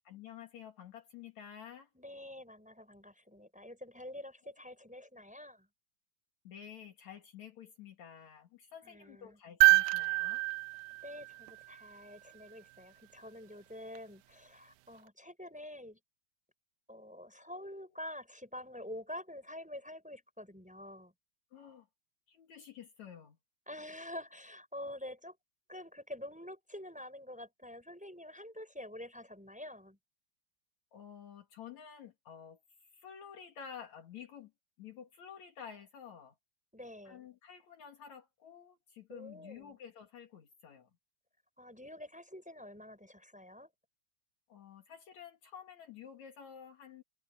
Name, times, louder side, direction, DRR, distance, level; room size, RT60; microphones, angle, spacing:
voice 1, 0.0-1.9 4.4-4.5 6.4-10.5 21.5-21.9 22.3-23.4 30.9-32.6 32.9-34.5 34.8-36.3 37.0-40.9 44.5-47.0, left 8 dB, 65° left, 3.1 m, -51 dB
voice 2, 1.9-5.7 8.8-9.4 11.0-16.0 16.9-21.1 23.7-25.4 25.7-30.0 36.7-37.2 39.1-39.7 41.6-43.7, left 1 dB, ahead, 5.5 m, -47 dB
sound 1, 9.6-11.9 13.9-14.0, right 23 dB, 80° right, 1.7 m, -27 dB
omnidirectional pair, 3.6 m